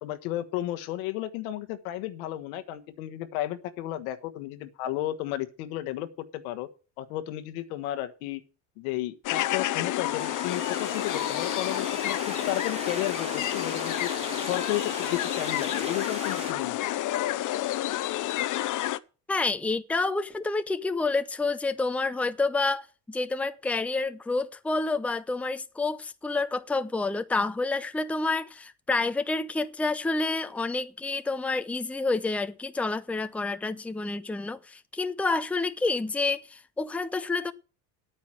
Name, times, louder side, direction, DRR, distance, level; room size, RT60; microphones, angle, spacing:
voice 1, 0.0-6.1 6.3-6.7 7.0-8.4 8.8-14.1 14.4-16.9, left 14 dB, 85° left, 1.4 m, -33 dB
sound 1, 9.2-19.0, left 14 dB, 50° left, 0.7 m, -30 dB
sound 2, 10.1-16.5, right 3 dB, 15° right, 1.0 m, -39 dB
voice 2, 19.3-37.5, left 3 dB, 5° left, 0.6 m, -29 dB
10.5 x 9.0 x 6.2 m
supercardioid pair, 100°, 41 cm